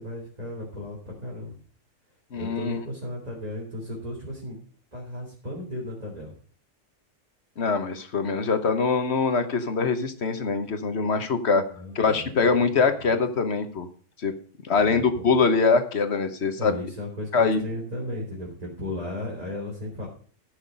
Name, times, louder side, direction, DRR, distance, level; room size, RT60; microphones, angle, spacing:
voice 1, 0.0-1.6 2.4-4.6 4.9-6.3 11.7-13.1 14.8-15.3 16.6-20.1, left 1 dB, 30° right, -4 dB, 3.4 m, -35 dB
voice 2, 2.3-2.8 7.6-11.6 11.9-13.9 14.2-14.3 14.6-16.8 17.3-17.6, left 4 dB, 60° left, 9 dB, 1.4 m, -23 dB
14.0 x 6.5 x 5.3 m, 0.44 s
omnidirectional pair, 1.3 m